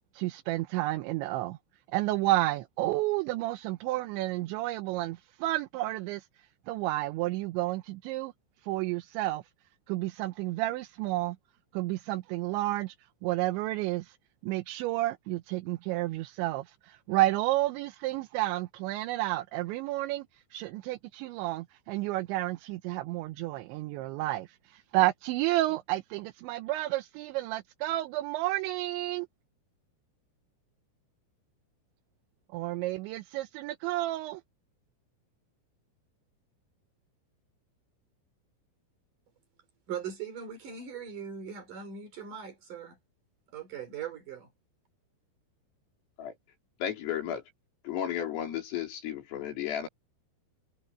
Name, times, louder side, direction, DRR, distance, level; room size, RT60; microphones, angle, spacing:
voice 1, 0.1-1.6 1.9-6.3 6.7-8.3 8.6-9.4 9.9-11.4 11.7-13.0 13.2-14.2 14.4-20.3 20.5-29.3 32.5-34.4, right 17 dB, 75° right, 2.9 m, -31 dB
voice 2, 39.9-43.0 43.5-44.5, right 7 dB, 45° right, 4.5 m, -40 dB
voice 3, 46.8-47.4 47.8-49.9, left 10 dB, 85° left, 6.7 m, -33 dB
omnidirectional pair, 5.8 m